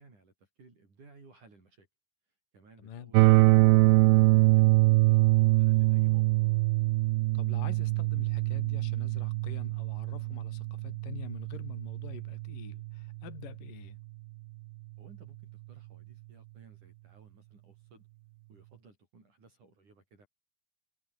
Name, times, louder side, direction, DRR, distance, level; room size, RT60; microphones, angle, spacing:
voice 1, 0.0-1.9 2.5-3.2 3.5-6.3 15.0-18.1 18.5-20.3, right 4 dB, 45° right, 7.7 m, -57 dB
voice 2, 2.8-3.1 7.3-14.0, left 9 dB, 55° left, 3.9 m, -46 dB
sound 1, 3.1-13.1, right 21 dB, 80° right, 2.5 m, -24 dB
omnidirectional pair, 4.8 m